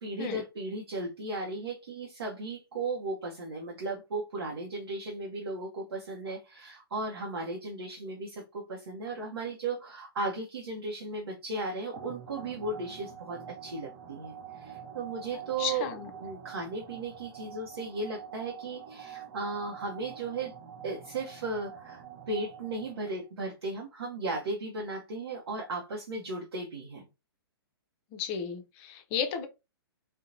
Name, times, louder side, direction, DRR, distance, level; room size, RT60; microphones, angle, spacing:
voice 1, 0.0-15.9 16.2-20.5 20.8-27.1, right 2 dB, 70° right, 0.7 m, -36 dB
sound 1, 11.9-23.3, right 8 dB, 35° right, 0.6 m, -46 dB
voice 2, 15.6-16.1 28.1-29.5, left 7 dB, 30° left, 0.5 m, -33 dB
2.8 x 2.1 x 2.4 m
figure-of-eight pair, 120°, 13 cm